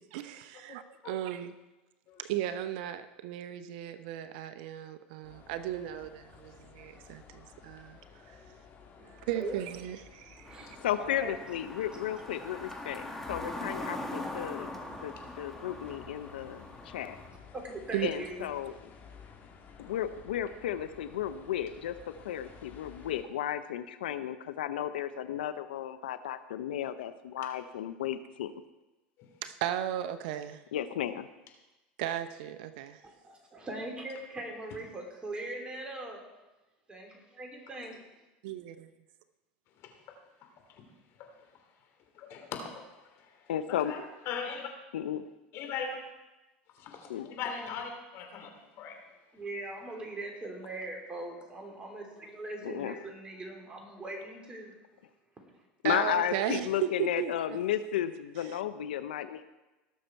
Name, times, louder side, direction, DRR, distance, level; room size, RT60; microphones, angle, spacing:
voice 1, 0.1-1.5 2.2-8.0 8.3-8.4 9.3-10.7 17.9-18.1 29.4-30.6 32.0-33.0 38.4-38.9 55.8-57.3, right 11 dB, 70° right, 10 dB, 0.8 m, -35 dB
sound 1, 5.2-23.2, left 6 dB, 40° left, 2.5 m, -54 dB
voice 2, 9.0-9.6 10.4-11.4 17.5-18.5 33.2-36.2 36.9-38.1 49.3-54.8, right 2 dB, 20° right, 1 dB, 3.4 m, -41 dB
sound 2, 10.4-17.3, left 1 dB, 5° left, 2.0 m, -42 dB
voice 3, 10.8-14.7 15.0-17.2 18.0-18.7 19.8-22.0 22.2-28.5 30.7-31.3 43.5-43.9 44.9-45.2 47.1-47.3 52.6-52.9 55.8-59.4, left 10 dB, 85° left, 12 dB, 0.6 m, -34 dB
voice 4, 39.8-40.1 40.4-40.8 41.2-41.3 42.1-44.7 45.5-46.0 46.7-49.0, left 6 dB, 55° left, 4 dB, 2.8 m, -40 dB
18.5 x 6.6 x 4.6 m, 1.1 s
hypercardioid pair, 95°, 5 cm